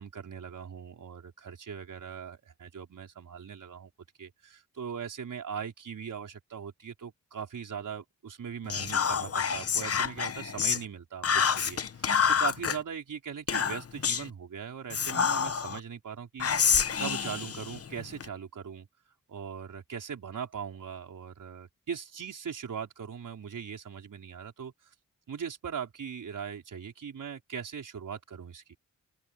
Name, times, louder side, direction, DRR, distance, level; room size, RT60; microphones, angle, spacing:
voice 1, 0.0-3.9 4.2-16.5 17.0-18.9 19.3-24.7 25.3-28.8, right 7 dB, 80° right, 4.4 m, -40 dB
Whispering, 8.7-10.8 11.2-12.8 13.5-14.3 14.9-15.8 16.4-18.3, left 7 dB, 50° left, 0.9 m, -28 dB
open air
wide cardioid pair, 175°, 31 cm